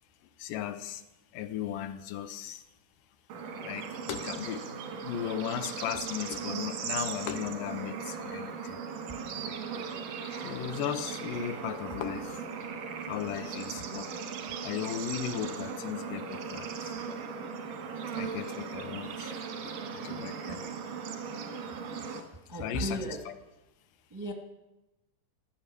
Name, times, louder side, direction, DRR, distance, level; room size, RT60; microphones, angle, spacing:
voice 1, 0.4-1.0 1.3-2.6 3.6-4.7 5.0-8.8 9.3-9.6 10.4-12.4 13.1-14.1 14.6-16.9 18.1-19.4 19.6-20.6 22.6-23.3, left 10 dB, 85° left, 2.4 m, -36 dB
Bird / Insect / Frog, 3.3-22.2, right 6 dB, 90° right, 3.1 m, -38 dB
voice 2, 22.5-23.2 24.1-24.3, right 1 dB, 15° right, 0.6 m, -36 dB
15.0 x 10.0 x 6.8 m
omnidirectional pair, 3.7 m